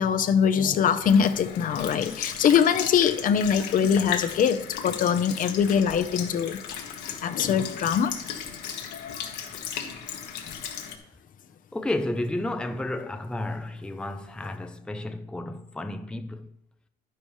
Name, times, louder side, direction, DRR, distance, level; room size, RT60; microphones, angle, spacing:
voice 1, 0.0-6.6 7.2-8.1 8.9-9.3, left 7 dB, 55° left, 0.7 m, -23 dB
Sink (filling or washing) / Liquid, 1.0-11.0, left 8 dB, 85° left, 1.4 m, -36 dB
voice 2, 11.7-16.5, left 1 dB, 5° left, 0.5 m, -32 dB
10.5 x 10.0 x 3.2 m
cardioid pair, 110°, 17 cm